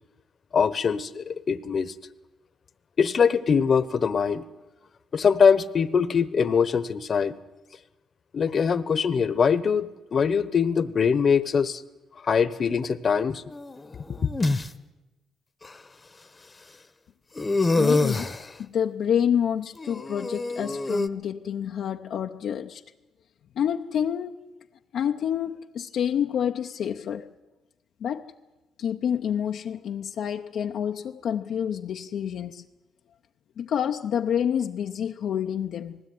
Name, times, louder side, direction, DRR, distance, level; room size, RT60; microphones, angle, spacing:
voice 1, 0.5-1.9 3.0-4.4 5.1-7.3 8.3-11.8 12.2-13.4, left 6 dB, 45° left, 1.1 m, -22 dB
sound 1, 13.5-14.7 15.6-15.7 17.4-18.5 19.8-21.1, left 3 dB, 25° left, 1.1 m, -25 dB
voice 2, 17.8-22.8 23.6-24.3 24.9-27.3 28.0-28.3 28.8-32.6 33.6-36.0, left 8 dB, 70° left, 0.7 m, -28 dB
19.5 x 16.5 x 9.5 m
cardioid pair, 90°, 0 cm